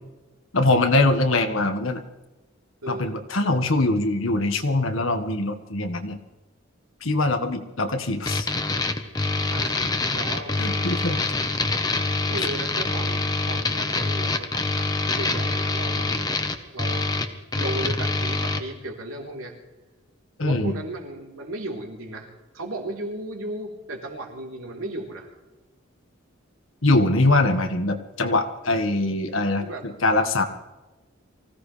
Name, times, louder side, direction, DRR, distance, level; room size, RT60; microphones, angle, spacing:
voice 1, 0.5-2.0 2.9-6.2 7.0-8.5 10.6-11.3 20.4-20.7 26.8-30.4, left 2 dB, 70° left, 6 dB, 1.7 m, -23 dB
voice 2, 2.8-3.3 9.4-10.9 12.3-14.9 15.2-16.4 16.7-17.1 17.6-19.5 20.4-25.3 27.1-27.3 29.6-29.8, right 2 dB, 85° right, 0 dB, 3.8 m, -35 dB
sound 1, 8.3-18.6, left 3 dB, 20° left, 1.1 m, -25 dB
24.5 x 16.5 x 3.4 m, 1.1 s
head